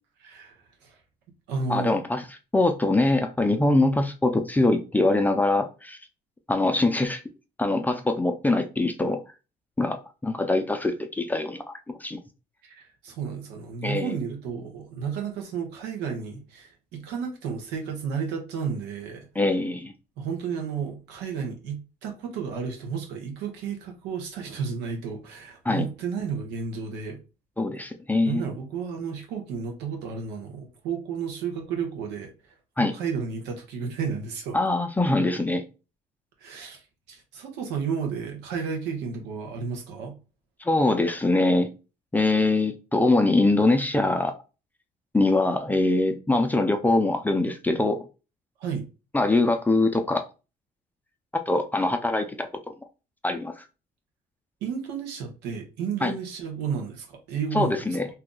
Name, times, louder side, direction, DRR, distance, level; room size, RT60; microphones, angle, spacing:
voice 1, 0.2-1.0 1.5-2.0 12.6-19.3 20.2-27.2 28.2-32.3 32.8-34.6 36.4-36.8 37.1-40.1 48.6-48.9 54.6-57.9, right 6 dB, 90° right, 0.9 m, -32 dB
voice 2, 1.7-2.3 2.5-6.0 6.5-7.2 7.6-9.2 9.8-12.2 13.8-14.1 19.4-19.9 25.7-25.9 27.6-28.4 32.8-32.9 34.5-35.6 40.6-41.7 42.1-44.3 45.1-48.1 49.1-50.2 51.3-52.7 53.2-53.6 56.0-56.1 57.5-58.1, left 2 dB, 10° left, 0.4 m, -23 dB
2.7 x 2.3 x 3.8 m
cardioid pair, 110°, 17 cm